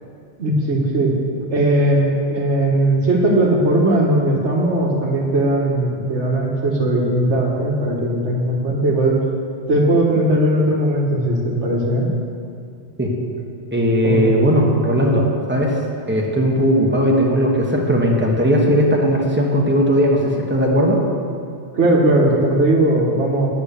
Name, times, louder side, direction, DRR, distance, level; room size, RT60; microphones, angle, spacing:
voice 1, 0.4-1.1 1.5-9.2 9.7-12.1 14.0-14.2 21.7-23.5, right 1 dB, 85° right, -1 dB, 1.9 m, -18 dB
voice 2, 13.7-15.7 16.1-21.0, equal, 10° right, -1 dB, 1.4 m, -17 dB
10.0 x 7.9 x 6.9 m, 2.3 s
omnidirectional pair, 1.2 m